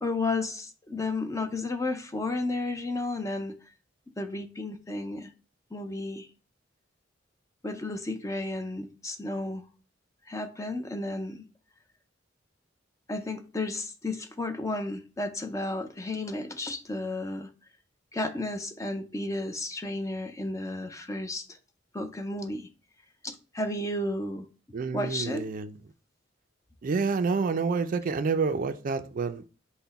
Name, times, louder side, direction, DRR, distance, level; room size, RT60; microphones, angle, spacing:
voice 1, 0.0-3.6 4.2-5.3 5.7-6.3 7.6-9.6 10.3-11.5 13.1-17.5 18.1-21.6 21.9-22.7 23.2-24.5 24.9-25.4, left 2 dB, 15° left, 0.4 m, -32 dB
voice 2, 24.7-25.7 26.8-29.5, right 4 dB, 45° right, 0.3 m, -28 dB
5.8 x 2.1 x 4.0 m
head